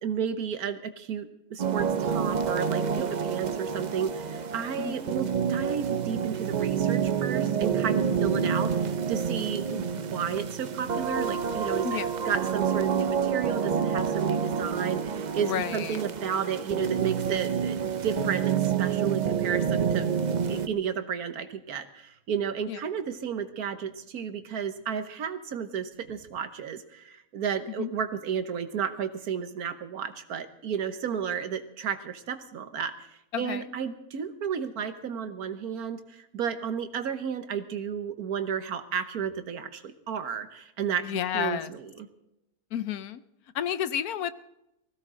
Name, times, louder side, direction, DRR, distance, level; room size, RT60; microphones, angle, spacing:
voice 1, 0.0-12.0 12.2-20.1 20.5-42.1, right 7 dB, 80° right, 9 dB, 1.5 m, -32 dB
sound 1, 1.6-20.7, right 7 dB, 60° right, 0.4 m, -28 dB
voice 2, 15.4-16.0 18.2-18.3 22.7-22.8 27.8-27.9 33.3-33.7 41.0-41.7 42.7-43.2 43.5-44.3, left 10 dB, 85° left, 13 dB, 1.3 m, -31 dB
20.0 x 16.0 x 3.8 m, 0.86 s
omnidirectional pair, 1.6 m